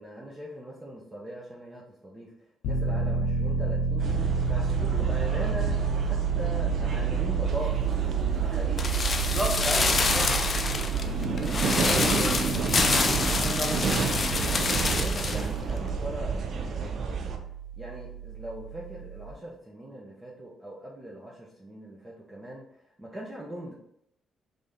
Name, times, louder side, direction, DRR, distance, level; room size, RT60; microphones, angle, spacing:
voice 1, 0.0-2.3 2.6-4.1 4.4-8.9 11.8-12.6 14.5-17.3 17.8-22.6 23.0-23.7, right 1 dB, 20° right, -4 dB, 0.7 m, -40 dB
Piano, 2.6-19.3, right 6 dB, 85° left, 0.6 m, -31 dB
sound 1, 4.0-17.4, right 5 dB, 60° right, 0.5 m, -30 dB
sound 2, 8.8-15.5 15.7-15.8, left 4 dB, 40° left, 0.4 m, -27 dB
voice 2, 9.3-10.3 11.8-12.3 13.3-13.8, equal, ahead, -2 dB, 1.1 m, -32 dB
3.5 x 2.7 x 3.4 m, 0.76 s
cardioid pair, 90°, 0 cm